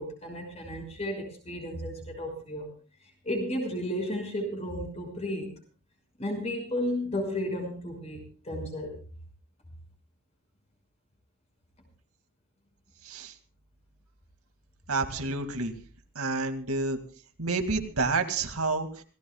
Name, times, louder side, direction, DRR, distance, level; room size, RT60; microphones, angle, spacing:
voice 1, 0.0-2.7 3.2-5.5 6.2-8.9, left 1 dB, 30° left, 3 dB, 6.0 m, -33 dB
voice 2, 14.9-15.7 16.2-17.0 17.4-19.0, right 3 dB, 85° right, 6 dB, 2.3 m, -29 dB
27.5 x 18.0 x 2.4 m, 0.39 s
head